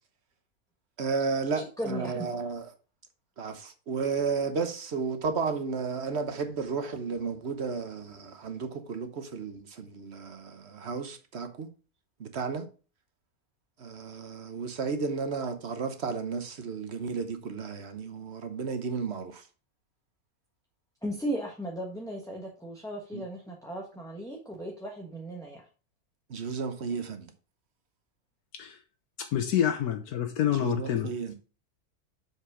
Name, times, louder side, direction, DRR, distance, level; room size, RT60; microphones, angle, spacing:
voice 1, 1.0-2.7 3.4-11.7 12.2-12.7 13.8-19.4 23.1-23.2 26.3-27.3 30.5-31.3, right 5 dB, 50° right, 1.2 m, -33 dB
voice 2, 1.6-2.1 21.0-25.7, equal, 5° left, 1.2 m, -36 dB
voice 3, 29.2-31.1, left 10 dB, 80° left, 1.3 m, -27 dB
7.3 x 5.1 x 4.9 m
omnidirectional pair, 1.6 m